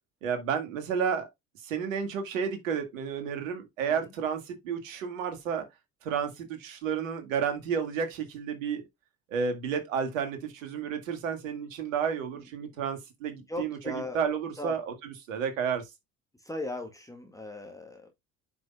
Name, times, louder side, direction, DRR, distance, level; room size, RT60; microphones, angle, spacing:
voice 1, 0.2-1.3 1.6-5.7 6.0-8.8 9.3-15.8, right 7 dB, 70° right, 2.2 m, -31 dB
voice 2, 3.8-4.1 12.3-12.4 13.3-14.2 14.6-14.7 16.4-18.1, left 2 dB, 10° left, 2.0 m, -38 dB
9.5 x 6.0 x 2.3 m
figure-of-eight pair, 55°, 40 cm